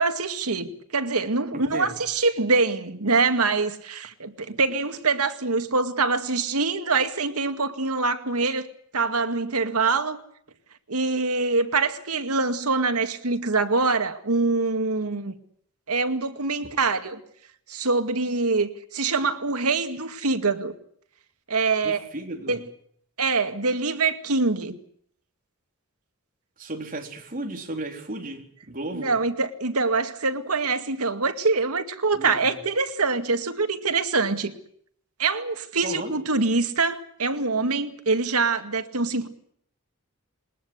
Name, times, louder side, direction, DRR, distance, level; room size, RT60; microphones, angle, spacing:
voice 1, 0.0-8.7 8.9-10.2 10.9-15.4 15.9-17.2 17.7-20.7 21.5-22.0 22.5-22.6 23.2-24.8 28.9-34.6 35.2-39.3, right 3 dB, 90° right, 2.2 m, -24 dB
voice 2, 1.5-2.0 21.8-22.6 26.6-29.2 32.1-32.6 35.8-36.2, right 2 dB, 40° right, 4.1 m, -35 dB
22.0 x 20.0 x 8.2 m
head